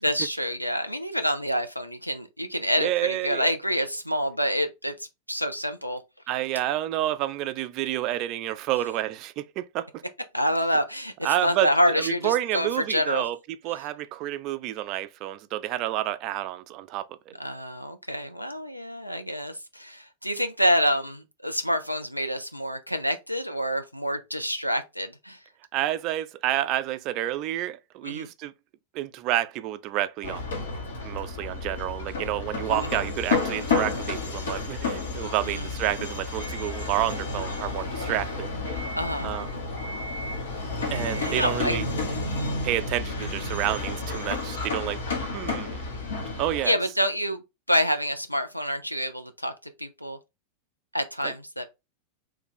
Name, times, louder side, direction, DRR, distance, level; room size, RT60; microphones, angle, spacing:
voice 1, 0.0-6.0 10.3-13.3 17.4-25.4 28.0-28.3 32.8-33.0 35.4-35.6 39.0-39.3 41.2-41.8 46.6-49.5 49.8-50.2 50.9-51.7, equal, 90° left, 0.4 m, -27 dB
voice 2, 2.8-3.5 6.3-10.0 11.2-11.7 11.9-13.4 13.6-17.4 25.7-28.5 28.9-30.4 31.0-38.5 39.2-39.5 40.9-41.9 42.6-45.0 45.3-45.8 46.4-46.8 51.2-51.3, right 13 dB, 40° right, 0.3 m, -29 dB
sound 1, 30.2-46.7, left 3 dB, 65° left, 0.9 m, -31 dB
3.1 x 2.4 x 3.4 m
figure-of-eight pair, 90°, 0 cm